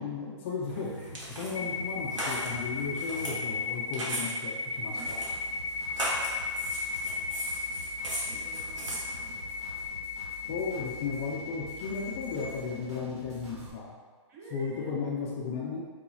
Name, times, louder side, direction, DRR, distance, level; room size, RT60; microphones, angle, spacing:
voice 1, 0.0-5.2 10.5-14.0 14.5-15.8, left 5 dB, 25° left, -3 dB, 0.4 m, -35 dB
sound 1, 0.7-9.9, right 1 dB, 80° right, 1.1 m, -38 dB
sound 2, 1.5-12.5, left 4 dB, 80° left, 0.5 m, -36 dB
sound 3, 5.0-13.7, right 1 dB, 60° right, 1.4 m, -47 dB
voice 2, 8.3-9.4 14.3-15.0, right 3 dB, 30° right, -2 dB, 0.5 m, -49 dB
4.0 x 2.9 x 2.3 m, 1.5 s
hypercardioid pair, 150°, 16 cm